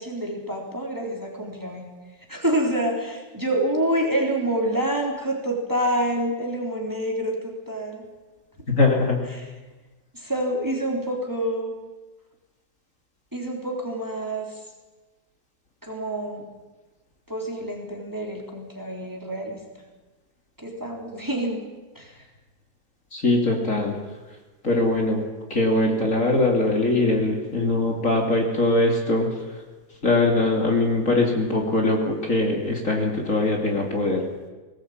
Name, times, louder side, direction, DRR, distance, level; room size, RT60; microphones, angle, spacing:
voice 1, 0.0-1.9 2.3-8.1 9.3-9.5 10.1-11.7 13.3-14.7 15.8-16.5 17.3-19.6 20.6-21.6 21.9-22.3, right 1 dB, 10° right, 0 dB, 3.6 m, -27 dB
voice 2, 8.7-9.2 23.1-24.0 24.6-25.2 25.5-29.3 30.0-34.2, left 2 dB, 45° left, 1 dB, 3.2 m, -21 dB
20.0 x 19.0 x 8.7 m, 1.2 s
omnidirectional pair, 1.9 m